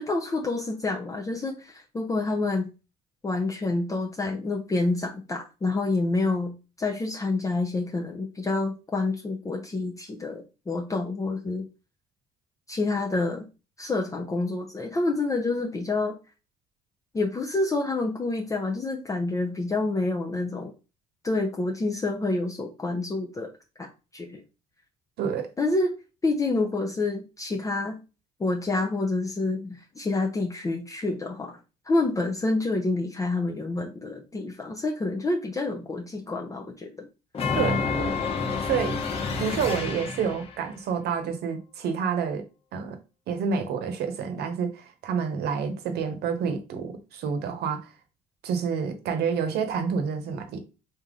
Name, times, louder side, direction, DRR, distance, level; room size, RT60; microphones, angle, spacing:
voice 1, 0.0-2.7 3.2-11.7 12.7-13.5 13.8-16.2 17.1-20.7 21.2-23.5 23.8-24.4 25.6-25.9 26.2-28.0 28.4-31.6 31.9-37.1, left 2 dB, 20° left, 0.5 m, -28 dB
voice 2, 25.2-25.5 37.5-38.1 38.6-39.0 39.4-42.5 42.7-43.0 43.3-47.9 48.4-50.6, right 6 dB, 70° right, 0.9 m, -28 dB
sound 1, 37.3-40.5, left 4 dB, 35° left, 1.0 m, -28 dB
3.5 x 2.8 x 3.7 m
cardioid pair, 110°, 17 cm